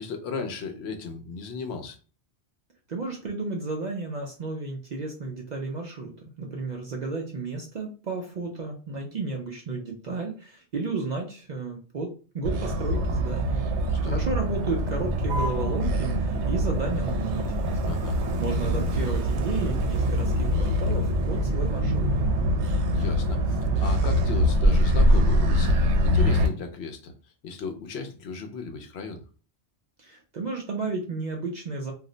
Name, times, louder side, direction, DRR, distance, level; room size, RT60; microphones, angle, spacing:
voice 1, 0.0-2.0 13.9-14.3 17.9-18.2 22.9-27.1 27.4-29.2, left 4 dB, 70° left, 6 dB, 0.8 m, -36 dB
voice 2, 2.9-6.1 6.4-13.6 14.0-17.7 18.4-22.1 30.0-31.9, right 3 dB, 55° right, 1 dB, 0.5 m, -33 dB
Motor vehicle (road), 12.4-26.5, equal, 85° right, 0.9 m, -24 dB
2.4 x 2.1 x 3.7 m, 0.36 s
omnidirectional pair, 1.1 m